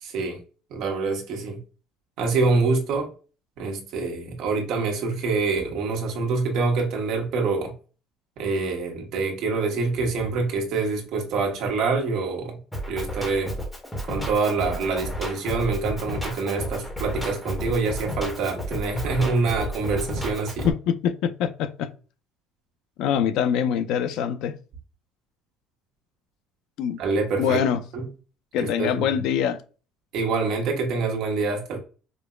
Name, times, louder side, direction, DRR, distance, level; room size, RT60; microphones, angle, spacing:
voice 1, 0.0-0.4 0.7-1.6 2.2-3.1 3.6-7.7 8.4-12.6 12.9-13.5 14.1-20.7 27.0-27.6 27.9-28.1 28.6-29.2 30.1-31.8, right 4 dB, 60° right, 1.2 m, -26 dB
Drum kit, 12.7-20.7, equal, 5° left, 0.9 m, -32 dB
voice 2, 20.6-21.9 23.0-24.5 26.8-27.0 27.4-27.8 28.5-29.6, left 8 dB, 65° left, 0.5 m, -24 dB
5.1 x 2.1 x 2.3 m
cardioid pair, 150°, 0 cm